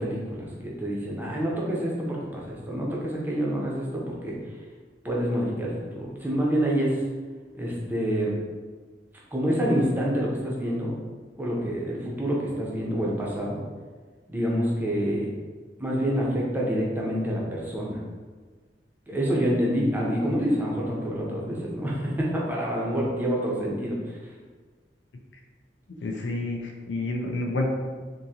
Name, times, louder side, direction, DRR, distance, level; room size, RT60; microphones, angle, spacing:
voice 1, 0.0-4.4 5.0-7.0 7.5-8.3 9.3-10.9 11.4-13.6 14.3-15.3 15.8-18.0 19.1-24.2, equal, 10° right, -4 dB, 0.6 m, -27 dB
voice 2, 26.0-27.7, left 2 dB, 90° left, 2 dB, 0.5 m, -29 dB
3.6 x 2.6 x 2.8 m, 1.4 s
head